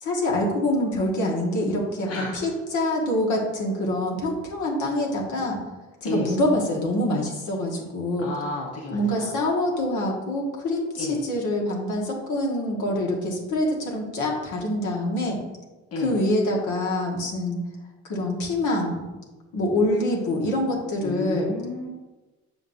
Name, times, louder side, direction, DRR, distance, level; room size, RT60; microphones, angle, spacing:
voice 1, 0.0-5.6 6.0-8.3 8.9-15.4 15.9-17.6 18.1-19.0 19.5-21.5, left 1 dB, 75° left, -1 dB, 1.5 m, -25 dB
voice 2, 2.1-2.4 6.0-6.3 8.2-9.3 11.0-11.2 15.9-16.1 21.0-21.9, left 2 dB, 55° left, -1 dB, 1.1 m, -31 dB
6.9 x 5.5 x 2.6 m, 1.1 s
cardioid pair, 90°, 30 cm